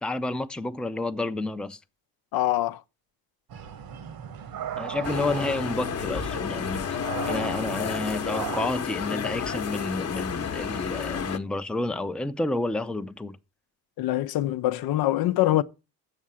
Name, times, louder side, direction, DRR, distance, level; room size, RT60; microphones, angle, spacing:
voice 1, 0.0-1.8 4.8-7.0 7.3-13.4, left 2 dB, 5° left, 0.5 m, -30 dB
voice 2, 2.3-2.8 14.0-15.6, left 15 dB, 75° left, 0.7 m, -24 dB
sound 1, 3.5-8.7, right 9 dB, 65° right, 1.2 m, -37 dB
sound 2, 5.0-11.4, left 7 dB, 40° left, 1.0 m, -31 dB
7.9 x 6.3 x 7.1 m
cardioid pair, 90°, 37 cm